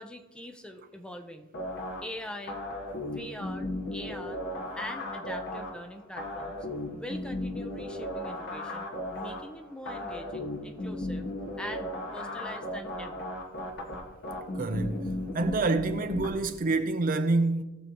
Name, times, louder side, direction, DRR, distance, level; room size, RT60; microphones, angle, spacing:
voice 1, 0.0-1.5 2.0-2.6 3.1-4.4 4.8-6.7 6.9-8.9 9.1-11.3 11.6-13.3, equal, 5° left, 0.7 m, -42 dB
sound 1, 1.5-16.3, left 1 dB, 55° left, 1.7 m, -36 dB
voice 2, 14.5-15.0 15.3-17.6, right 3 dB, 40° right, 0.7 m, -27 dB
18.5 x 6.8 x 3.0 m
head